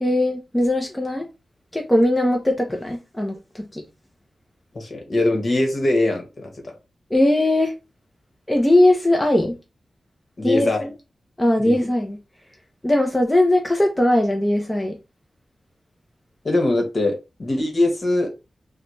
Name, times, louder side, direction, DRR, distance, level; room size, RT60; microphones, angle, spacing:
voice 1, 0.0-1.3 1.7-3.8 7.1-7.7 8.5-9.6 10.4-10.9 11.4-12.2 12.8-15.0, left 1 dB, 10° left, 0.6 m, -19 dB
voice 2, 4.7-6.7 10.4-10.9 11.6-11.7 16.4-18.3, left 2 dB, 50° left, 1.1 m, -22 dB
4.0 x 2.2 x 3.0 m
wide cardioid pair, 110°, 0 cm